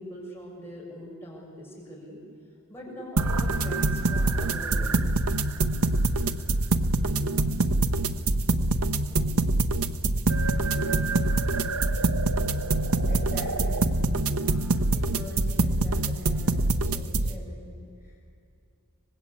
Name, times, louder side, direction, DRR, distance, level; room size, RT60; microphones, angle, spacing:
voice 1, 0.0-2.2 2.7-5.3, equal, 10° left, -4 dB, 6.3 m, -42 dB
sound 1, 3.2-17.3, right 2 dB, 70° right, 1.0 m, -25 dB
voice 2, 13.0-14.1 14.4-18.2, left 1 dB, 10° right, -4 dB, 5.5 m, -44 dB
25.5 x 20.0 x 8.5 m, 2.5 s
head